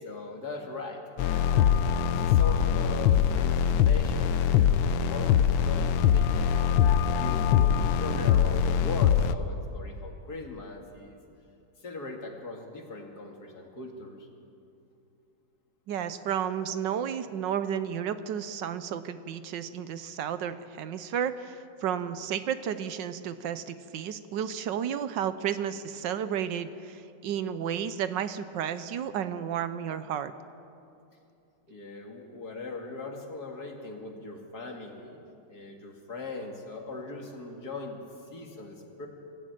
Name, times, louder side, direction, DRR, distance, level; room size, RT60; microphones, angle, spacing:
voice 1, 0.0-1.8 2.1-6.7 7.1-11.2 11.8-14.3 31.7-35.2 35.5-38.0 38.3-39.1, left 3 dB, 55° left, 2 dB, 2.8 m, -40 dB
sound 1, 1.2-9.3, left 8 dB, 85° left, 1.5 m, -23 dB
voice 2, 15.9-30.3, right 9 dB, 70° right, 12 dB, 1.4 m, -32 dB
23.0 x 14.5 x 9.1 m, 2.6 s
omnidirectional pair, 2.1 m